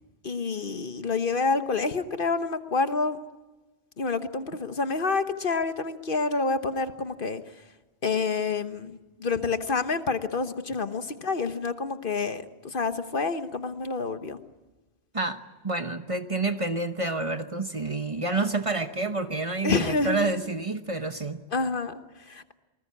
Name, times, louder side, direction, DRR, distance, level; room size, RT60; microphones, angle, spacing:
voice 1, 0.2-3.2 4.0-7.4 8.0-14.4 19.6-20.4 21.5-22.5, left 4 dB, 50° left, 1.3 m, -28 dB
voice 2, 15.1-21.4, right 3 dB, 30° right, 1.1 m, -29 dB
28.0 x 20.5 x 8.6 m
omnidirectional pair, 1.2 m